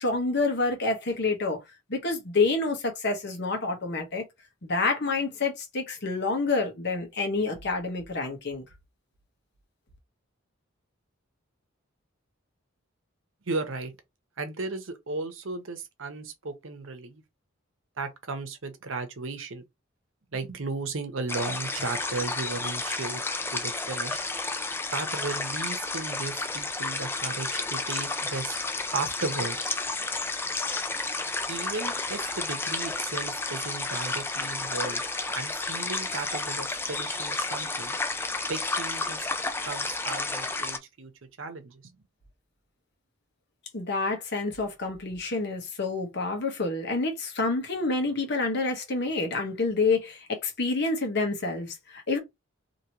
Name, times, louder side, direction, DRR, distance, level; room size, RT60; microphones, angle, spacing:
voice 1, 0.0-1.6 1.9-4.2 4.6-8.6 43.7-52.2, left 3 dB, 60° left, 1.1 m, -28 dB
voice 2, 13.5-13.9 14.4-17.2 18.0-19.6 20.3-23.2 23.5-24.2 24.9-28.6 28.9-29.7 31.5-35.0 35.3-38.0 38.5-39.3 39.6-41.1 41.4-41.9, right 3 dB, 70° right, 0.8 m, -35 dB
sound 1, 21.3-40.8, left 3 dB, 10° left, 0.4 m, -31 dB
2.9 x 2.9 x 2.9 m
head